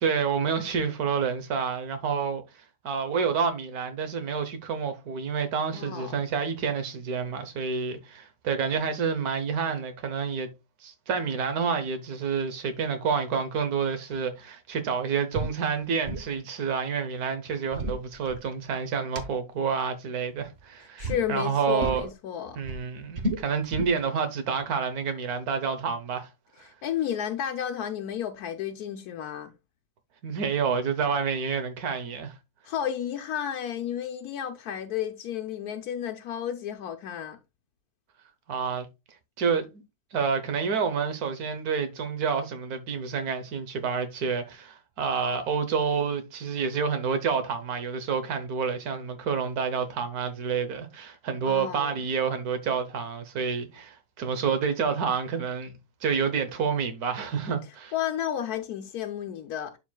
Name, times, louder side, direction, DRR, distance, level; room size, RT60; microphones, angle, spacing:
voice 1, 0.0-10.5 10.8-22.1 22.6-26.3 30.2-32.3 38.5-38.9 39.4-39.8 40.1-55.7 56.0-57.9, right 6 dB, 85° right, 1.5 m, -29 dB
voice 2, 5.7-6.2 20.8-22.6 26.6-29.5 32.6-37.4 51.5-51.9 57.9-59.8, left 9 dB, 85° left, 1.2 m, -32 dB
sound 1, 15.3-15.6 15.8-16.3 17.5-18.7 19.1-19.2 20.3-20.6 21.0-21.2 21.8-22.1 22.5-24.0, right 1 dB, 45° right, 1.3 m, -32 dB
11.5 x 4.5 x 2.2 m
omnidirectional pair, 1.6 m